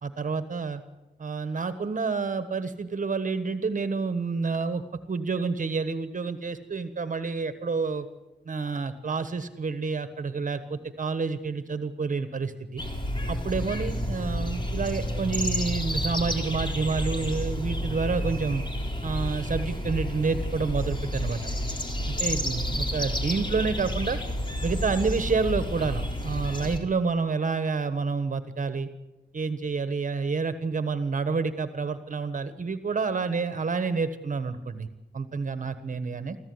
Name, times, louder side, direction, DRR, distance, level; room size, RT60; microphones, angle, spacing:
voice 1, 0.0-0.8 1.2-4.8 5.1-8.1 8.4-12.8 13.3-18.6 19.0-21.4 22.1-24.2 24.6-28.9 29.3-34.9 35.1-36.4, right 4 dB, 50° right, 11 dB, 1.3 m, -29 dB
sound 1, 12.8-26.8, equal, 25° left, 3.4 m, -30 dB
26.0 x 15.0 x 9.6 m, 1.1 s
wide cardioid pair, 140°, 18 cm